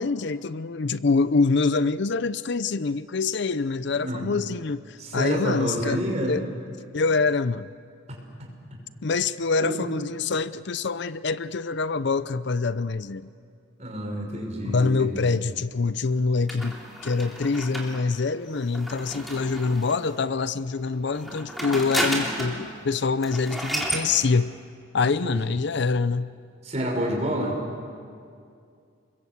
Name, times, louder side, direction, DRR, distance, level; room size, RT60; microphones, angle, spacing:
voice 1, 0.0-6.4 6.9-7.7 9.0-13.3 14.6-24.6 24.9-26.3, left 4 dB, 55° left, 0.5 m, -25 dB
voice 2, 3.9-4.3 5.0-6.4 9.6-9.8 13.8-15.3 25.0-25.4 26.6-27.6, equal, 35° right, 5.8 m, -29 dB
sound 1, 16.5-20.1 21.1-22.6 22.9-23.0 23.2-24.1, equal, ahead, 3.3 m, -32 dB
29.0 x 22.0 x 8.3 m
head